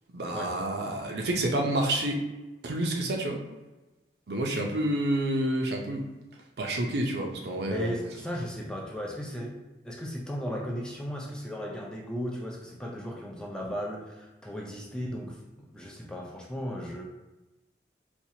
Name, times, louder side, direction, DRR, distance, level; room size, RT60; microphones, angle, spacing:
voice 1, 0.1-2.2 2.6-3.4 4.3-6.1 6.6-7.9, right 1 dB, 65° right, 1 dB, 0.6 m, -29 dB
voice 2, 7.7-17.0, equal, 5° left, -2 dB, 0.4 m, -36 dB
4.3 x 2.3 x 2.8 m, 1.1 s
head